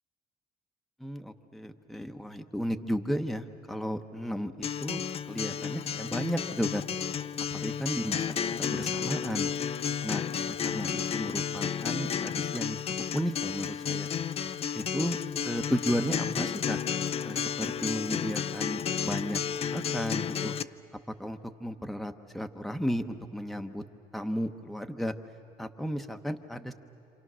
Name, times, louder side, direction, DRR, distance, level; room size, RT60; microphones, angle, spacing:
voice 1, 1.0-5.0 5.3-6.8 7.5-9.5 10.0-12.8 13.1-14.1 14.7-15.2 15.4-16.8 17.2-20.5 21.2-23.8 24.1-25.1 25.6-26.7, equal, ahead, 6 dB, 0.9 m, -34 dB
Acoustic guitar, 4.6-20.6, left 8 dB, 35° left, 0.5 m, -32 dB
27.5 x 27.0 x 6.2 m, 2.9 s
cardioid pair, 110°, 17 cm